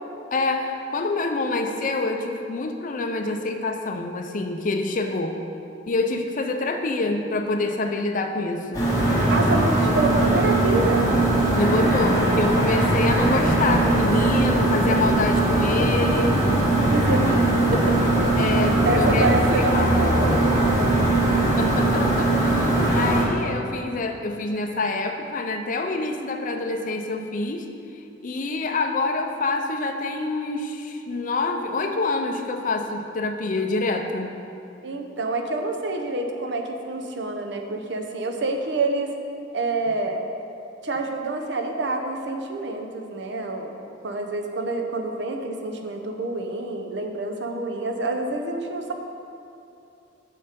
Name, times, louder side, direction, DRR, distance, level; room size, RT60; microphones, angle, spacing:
voice 1, 0.3-5.4 5.9-8.9 11.5-16.4 18.4-19.3 19.6-19.9 21.6-27.7 28.2-34.3, left 3 dB, 45° left, 4 dB, 0.6 m, -26 dB
sound 1, 8.7-23.2, right 2 dB, 20° left, 1.9 m, -20 dB
voice 2, 9.3-11.1 16.8-17.4 18.8-21.0 22.5-22.6 34.8-39.1 39.5-40.2 40.8-48.9, right 2 dB, 70° right, 4 dB, 0.7 m, -27 dB
6.5 x 6.5 x 5.2 m, 2.7 s
head